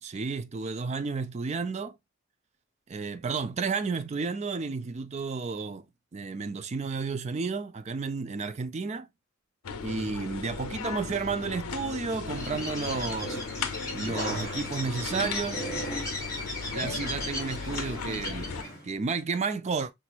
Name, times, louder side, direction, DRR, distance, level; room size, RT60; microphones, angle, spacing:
voice 1, 0.0-1.9 2.9-5.9 6.1-9.1 9.8-13.4 13.9-15.7 16.7-18.5 18.8-19.9, right 4 dB, 30° right, 0.4 m, -32 dB
sound 1, 9.6-18.6, left 5 dB, 90° left, 0.6 m, -37 dB
Bird, 12.2-18.8, left 1 dB, 15° left, 2.8 m, -36 dB
5.9 x 3.2 x 2.4 m
head